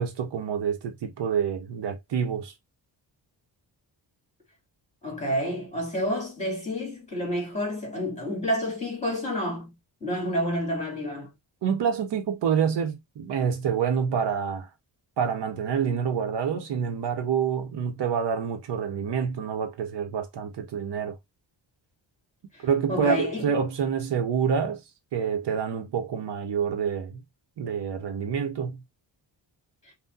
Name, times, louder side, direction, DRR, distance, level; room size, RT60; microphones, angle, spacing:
voice 1, 0.0-2.5 11.6-14.7 15.2-21.2 22.6-24.8 25.1-27.2 27.6-28.8, right 7 dB, 65° right, 0.9 m, -27 dB
voice 2, 5.0-9.7 10.0-11.3 22.5-23.5, equal, 15° left, 2.7 m, -29 dB
5.7 x 2.2 x 2.7 m
wide cardioid pair, 155°, 45 cm